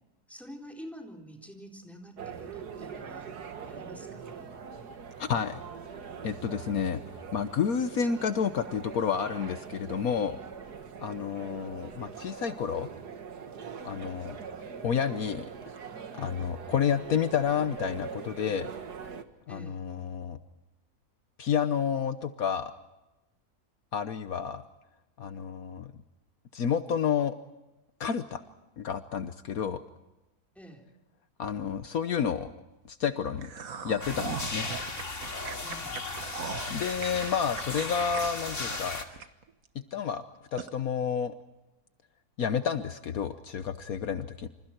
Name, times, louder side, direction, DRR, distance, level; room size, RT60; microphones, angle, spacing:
voice 1, 0.3-3.3 3.7-4.5 19.5-19.8 30.6-30.9 35.6-36.0, equal, ahead, 1 dB, 3.9 m, -47 dB
sound 1, 2.2-19.2, right 6 dB, 90° right, 2.1 m, -42 dB
voice 2, 5.2-5.6 6.2-7.0 7.3-10.4 11.0-12.9 13.8-14.4 14.8-15.5 16.2-18.7 19.5-20.4 21.4-22.7 23.9-24.6 25.2-25.9 26.5-27.3 28.0-28.4 28.8-29.8 31.4-32.5 32.9-33.5 33.8-34.7 36.7-39.0 39.9-40.2 40.5-41.3 42.4-44.5, left 7 dB, 70° left, 10 dB, 1.4 m, -30 dB
sound 2, 33.4-39.7 40.0-40.1 40.6-40.7, right 6 dB, 65° right, 1.6 m, -40 dB
sound 3, 34.0-39.0, left 3 dB, 50° left, 2.6 m, -36 dB
27.5 x 27.5 x 4.5 m, 0.98 s
omnidirectional pair, 1.7 m